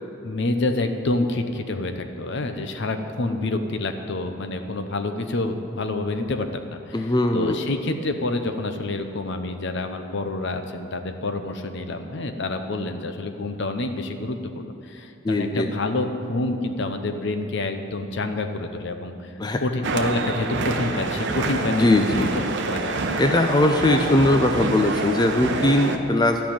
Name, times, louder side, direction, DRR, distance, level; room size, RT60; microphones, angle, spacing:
voice 1, 0.2-19.3 19.6-23.0, left 2 dB, 60° left, 7 dB, 0.8 m, -28 dB
voice 2, 6.9-7.6 15.2-15.7 19.4-19.6 21.7-22.3 23.2-26.4, left 1 dB, 20° left, 5 dB, 0.5 m, -20 dB
sound 1, 19.8-26.0, right 3 dB, 60° right, 0.8 m, -27 dB
13.0 x 5.7 x 8.6 m, 2.7 s
head